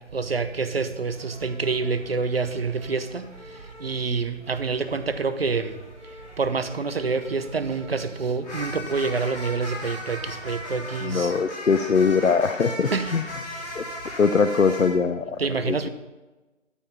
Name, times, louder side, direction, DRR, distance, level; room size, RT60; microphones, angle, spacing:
voice 1, 0.1-3.3 3.8-5.7 6.4-11.3 12.9-13.1 13.5-13.6 15.4-15.9, right 4 dB, 50° right, 0.8 m, -27 dB
sound 1, 1.1-3.9 4.4-14.9, left 1 dB, 10° left, 1.9 m, -39 dB
voice 2, 11.0-13.2 13.7-13.8 14.2-15.4 15.6-15.8, left 5 dB, 85° left, 0.7 m, -21 dB
13.0 x 5.6 x 5.7 m
figure-of-eight pair, 160°, 38 cm